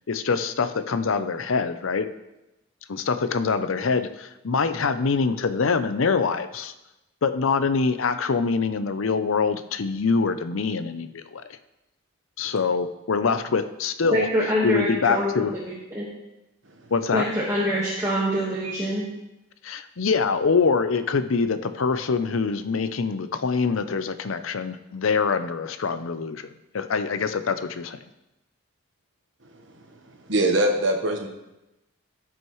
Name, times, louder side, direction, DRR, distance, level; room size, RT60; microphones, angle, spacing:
voice 1, 0.1-2.1 2.9-6.7 7.2-11.6 12.4-14.3 14.6-15.5 16.9-17.3 19.6-28.0, left 5 dB, 75° left, 11 dB, 0.6 m, -24 dB
voice 2, 14.1-16.1 17.1-19.1, equal, 15° right, -7 dB, 1.5 m, -25 dB
voice 3, 30.3-31.3, right 1 dB, 65° right, 3 dB, 1.3 m, -22 dB
15.0 x 6.3 x 3.1 m, 0.95 s
head